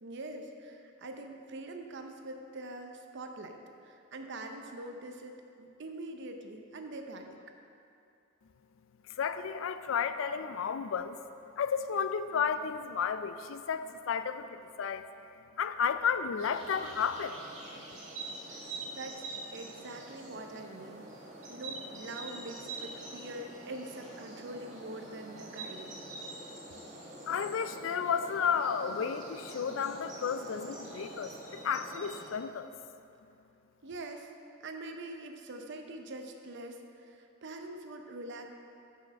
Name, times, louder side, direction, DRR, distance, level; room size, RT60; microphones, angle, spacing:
voice 1, 0.0-7.4 18.5-19.3 19.5-21.1 21.4-26.0 33.8-34.3 34.6-38.5, right 2 dB, 60° right, 4 dB, 0.7 m, -44 dB
voice 2, 9.1-11.2 11.6-15.0 15.6-17.4 27.3-32.7, left 6 dB, 70° left, 11 dB, 0.4 m, -32 dB
sound 1, 16.4-32.3, right 2 dB, 40° right, 1.7 m, -45 dB
6.5 x 5.5 x 6.3 m, 2.6 s
head